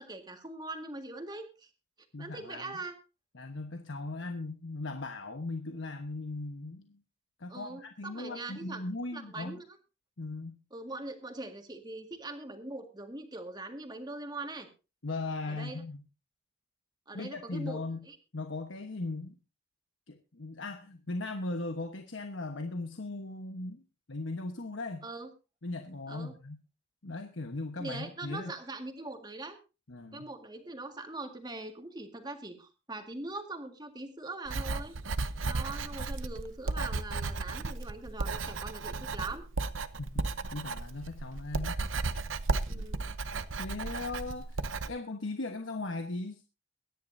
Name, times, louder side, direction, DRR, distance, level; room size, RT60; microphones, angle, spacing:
voice 1, 0.0-1.7 2.2-3.0 7.5-8.8 9.1-9.6 10.7-14.7 15.5-15.8 17.1-18.2 25.0-25.3 26.1-26.3 27.8-29.6 30.1-35.0 35.5-39.4 42.7-43.0, right 2 dB, 20° right, 5 dB, 1.9 m, -42 dB
voice 2, 2.1-2.7 3.3-7.0 7.4-9.6 10.2-10.6 15.0-16.0 17.1-18.0 18.3-19.4 20.1-23.8 24.1-25.1 25.6-26.6 27.0-28.5 29.9-30.3 40.0-40.2 40.5-41.7 42.7-42.9 43.6-46.4, left 2 dB, 80° left, 6 dB, 1.2 m, -38 dB
Writing, 34.5-44.9, right 3 dB, 90° right, 0.8 m, -34 dB
23.0 x 10.5 x 2.7 m, 0.30 s
head